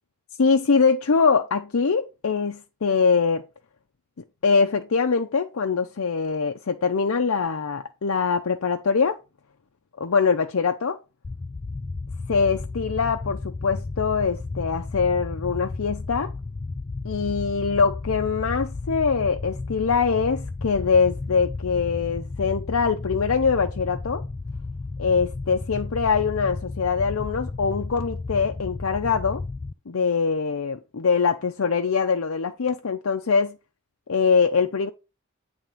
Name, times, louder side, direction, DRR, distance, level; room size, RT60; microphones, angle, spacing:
voice 1, 0.4-3.4 4.4-9.2 10.0-11.0 12.3-16.3 17.0-24.2 25.0-29.4 29.9-33.6 34.1-34.9, left 5 dB, 70° left, 0.6 m, -23 dB
sound 1, 11.2-29.7, left 3 dB, 25° left, 0.3 m, -33 dB
9.0 x 3.5 x 5.0 m
head